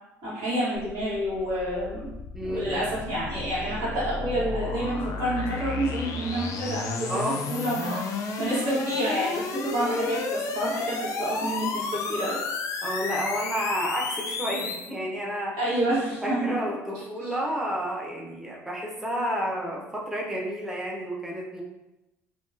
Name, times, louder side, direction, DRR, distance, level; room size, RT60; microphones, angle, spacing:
voice 1, 0.2-2.1 2.4-7.2 7.5-8.0 8.4-12.4 15.6-16.6 17.2-17.3, right 1 dB, 80° right, -9 dB, 1.2 m, -28 dB
sound 1, 0.8-14.9, left 4 dB, 60° left, 0.4 m, -32 dB
voice 2, 2.3-2.7 7.1-7.4 12.8-15.6 16.2-21.6, equal, 5° right, -3 dB, 0.6 m, -30 dB
2.9 x 2.3 x 2.4 m, 0.94 s
supercardioid pair, 85°, 6 cm